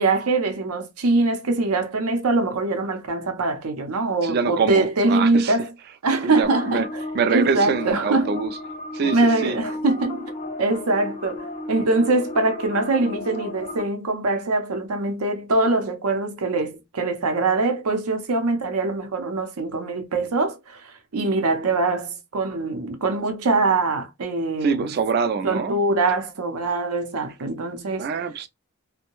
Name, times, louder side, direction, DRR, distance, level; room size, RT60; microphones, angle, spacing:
voice 1, 0.0-5.7 6.0-7.0 7.3-8.4 9.1-10.3 10.6-24.9 25.4-28.1, right 3 dB, 85° right, 0.6 m, -23 dB
voice 2, 4.2-5.6 6.2-6.9 7.1-8.5 8.9-9.6 24.6-25.8 28.0-28.5, right 5 dB, 45° right, 0.3 m, -25 dB
sound 1, 6.4-13.8, left 2 dB, 30° left, 0.4 m, -34 dB
2.6 x 2.1 x 2.9 m
head